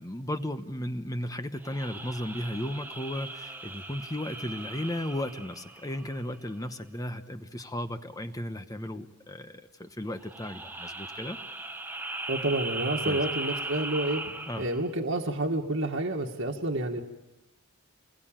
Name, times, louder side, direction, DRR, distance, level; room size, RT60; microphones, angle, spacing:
voice 1, 0.0-11.4 13.0-13.2 14.5-14.6, left 1 dB, 15° left, 8 dB, 1.0 m, -35 dB
sound 1, 1.6-6.4 10.2-14.9, right 2 dB, 10° right, 1.1 m, -38 dB
voice 2, 12.3-17.0, right 1 dB, 60° right, 0 dB, 1.8 m, -29 dB
29.0 x 21.0 x 9.0 m, 1.0 s
head